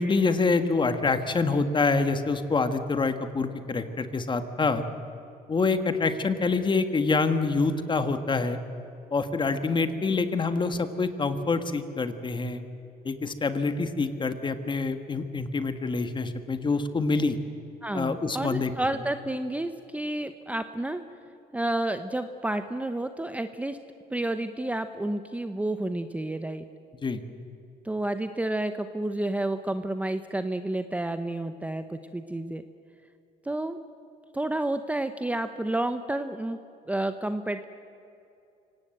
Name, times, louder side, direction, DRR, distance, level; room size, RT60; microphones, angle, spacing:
voice 1, 0.0-4.8 5.5-8.6 9.1-12.6 13.0-17.4 17.9-18.7 27.0-27.2, left 4 dB, 30° left, 9 dB, 1.7 m, -26 dB
voice 2, 17.8-21.0 21.5-23.8 24.1-26.6 27.8-32.6 33.4-33.8 34.3-36.6 36.9-37.6, right 1 dB, 10° right, 9 dB, 0.9 m, -30 dB
25.0 x 18.0 x 8.0 m, 2.6 s
cardioid pair, 110°, 17 cm